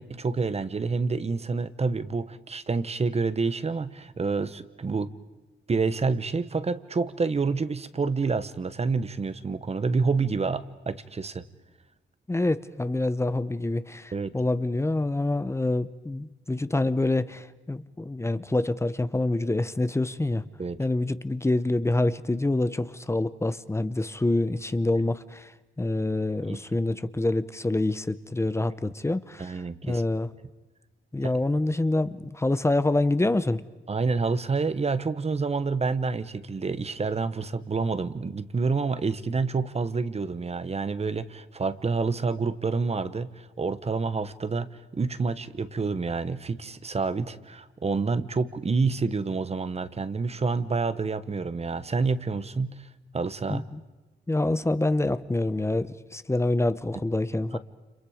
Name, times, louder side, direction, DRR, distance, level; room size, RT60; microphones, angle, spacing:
voice 1, 0.0-5.1 5.7-11.4 14.1-14.3 20.6-20.8 26.5-26.6 29.4-30.0 33.9-52.9 53.1-53.6 57.5-57.6, right 4 dB, 30° right, 13 dB, 1.1 m, -28 dB
voice 2, 12.3-20.4 20.8-25.5 25.8-30.3 31.1-33.6 53.5-53.8 54.3-57.6, left 2 dB, 15° left, 13 dB, 0.8 m, -26 dB
30.0 x 30.0 x 5.1 m, 1.1 s
wide cardioid pair, 140°, 20 cm